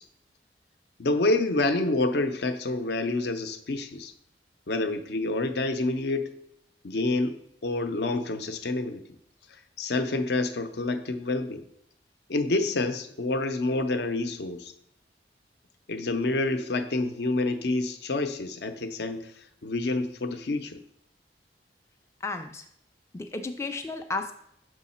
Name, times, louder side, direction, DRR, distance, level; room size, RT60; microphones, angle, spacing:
voice 1, 1.0-4.1 4.7-6.3 6.8-7.3 7.6-9.0 9.8-11.6 12.3-14.7 15.9-19.3 19.6-20.8, left 2 dB, 65° left, 8 dB, 0.6 m, -28 dB
voice 2, 22.2-22.7 23.1-24.3, left 3 dB, 15° left, 5 dB, 0.3 m, -33 dB
6.3 x 4.7 x 4.2 m, 0.73 s
head